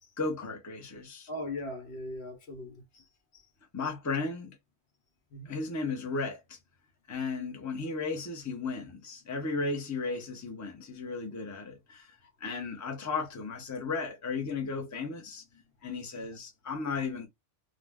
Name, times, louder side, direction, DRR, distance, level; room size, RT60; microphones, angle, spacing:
voice 1, 0.2-1.3 3.7-4.6 5.5-6.6 7.1-12.1 12.4-15.4 15.8-17.3, left 4 dB, 20° left, 0.6 m, -35 dB
voice 2, 1.3-3.5 5.3-5.6 12.2-12.3 15.8-16.0, left 1 dB, 70° left, 1.1 m, -41 dB
2.5 x 2.1 x 3.4 m
omnidirectional pair, 1.2 m